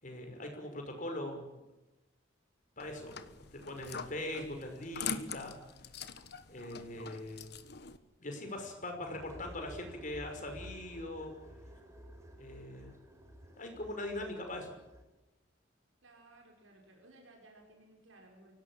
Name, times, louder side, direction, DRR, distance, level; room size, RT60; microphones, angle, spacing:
voice 1, 0.0-1.7 2.8-5.5 6.5-7.5 8.2-11.3 12.4-12.9 13.6-14.7, left 1 dB, 40° left, 4 dB, 5.7 m, -41 dB
sound 1, 2.8-8.0, left 6 dB, 55° left, 1.5 m, -43 dB
sound 2, 9.2-15.0, equal, 15° right, 4.0 m, -52 dB
voice 2, 16.0-18.5, right 2 dB, 85° right, 1 dB, 5.6 m, -59 dB
25.0 x 17.5 x 9.0 m, 1.0 s
head